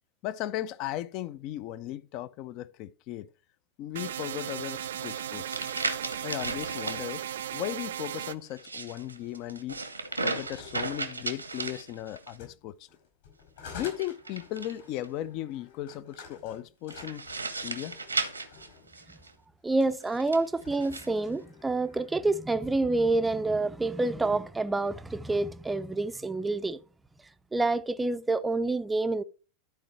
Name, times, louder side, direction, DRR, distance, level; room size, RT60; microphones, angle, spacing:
voice 1, 0.2-3.3 3.8-5.6 6.2-7.2 7.5-9.8 10.2-12.9 13.7-17.3 17.6-18.0, left 13 dB, 40° left, 0.5 m, -36 dB
sound 1, 4.0-8.4, right 10 dB, 60° right, 0.4 m, -36 dB
sound 2, 5.0-7.0 8.5-12.4 13.7-15.1 16.9-19.3 20.1-21.1, right 3 dB, 80° right, 1.1 m, -36 dB
sound 3, 10.1-11.7 12.3-18.9 19.6-20.1 20.4-22.4, left 6 dB, 60° left, 4.7 m, -50 dB
voice 2, 19.6-26.8 27.5-29.2, right 2 dB, 10° right, 0.5 m, -28 dB
12.0 x 4.6 x 4.4 m
figure-of-eight pair, 90°, 0 cm